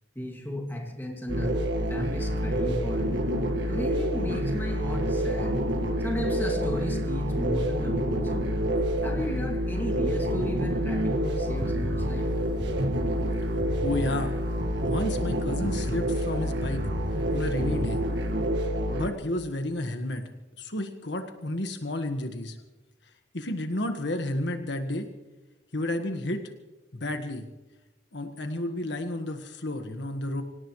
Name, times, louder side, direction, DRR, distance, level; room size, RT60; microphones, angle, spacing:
voice 1, 0.2-3.2 3.7-5.6 6.0-8.7 9.0-12.4 12.7-12.8, equal, 10° left, 2.2 m, -34 dB
sound 1, 1.3-19.1, equal, 70° right, 1.7 m, -28 dB
sound 2, 11.6-18.3, equal, 40° right, 3.3 m, -37 dB
voice 2, 13.5-14.3 14.8-16.9 17.3-18.0 18.9-20.2 20.6-22.6 23.3-25.1 25.7-26.4 26.9-27.5 28.1-30.4, left 1 dB, 70° left, 1.5 m, -31 dB
25.5 x 17.5 x 3.2 m
head